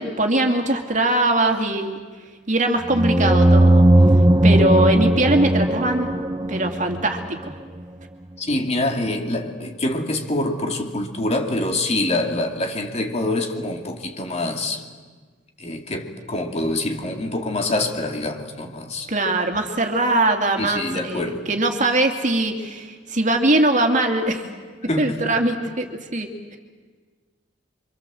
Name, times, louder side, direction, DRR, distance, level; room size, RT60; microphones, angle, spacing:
voice 1, 0.0-2.0 2.5-3.8 4.4-6.1 6.5-7.6 19.1-24.5 25.0-26.6, right 2 dB, 40° right, 5 dB, 2.5 m, -21 dB
sound 1, 2.9-7.5, right 1 dB, 20° right, 0.7 m, -17 dB
voice 2, 8.4-14.9 15.6-19.1 20.6-21.5 24.9-25.3, left 2 dB, 35° left, 3 dB, 2.7 m, -25 dB
28.5 x 25.0 x 7.7 m, 1.5 s
head